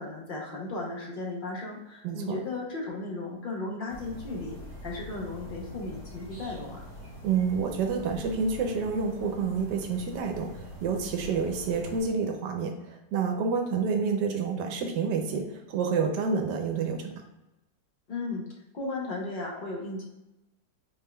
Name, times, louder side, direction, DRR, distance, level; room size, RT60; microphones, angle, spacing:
voice 1, 0.0-6.9 18.1-18.4 18.7-20.0, left 2 dB, 55° left, -2 dB, 0.6 m, -35 dB
voice 2, 2.0-2.4 7.2-17.1, right 5 dB, 85° right, 4 dB, 1.2 m, -29 dB
sound 1, 3.9-12.1, left 1 dB, 20° left, 0.9 m, -44 dB
4.2 x 3.4 x 2.2 m, 0.96 s
omnidirectional pair, 1.8 m